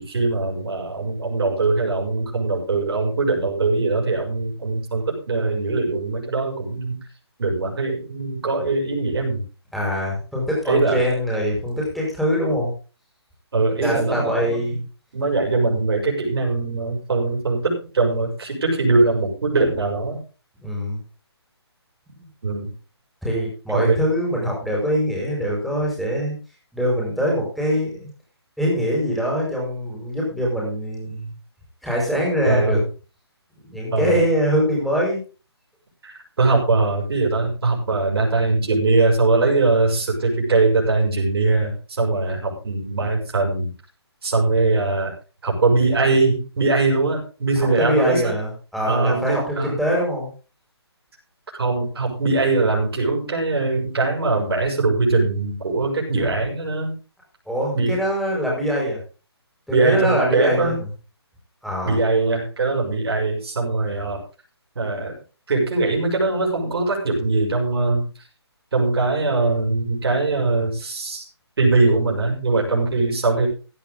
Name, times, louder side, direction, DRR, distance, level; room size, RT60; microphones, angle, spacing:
voice 1, 0.0-7.0 7.4-9.4 10.7-11.1 13.5-14.6 15.1-20.2 22.4-22.7 23.7-24.0 32.4-32.8 33.9-34.2 36.0-43.7 44.2-45.1 45.4-48.3 48.9-49.8 51.6-56.9 57.7-57.9 59.7-60.8 61.8-64.2 64.7-65.1 65.5-68.0 68.7-71.2 71.6-73.5, right 3 dB, 60° right, 0 dB, 6.3 m, -21 dB
voice 2, 9.7-12.7 13.8-14.8 20.6-21.0 22.2-22.3 23.2-26.4 26.7-28.1 28.6-31.3 31.8-32.8 33.7-35.2 47.8-50.3 57.5-59.0 59.7-60.7 61.6-62.0, equal, ahead, -4 dB, 5.4 m, -23 dB
15.0 x 10.5 x 3.8 m, 0.35 s
figure-of-eight pair, 145°, 14 cm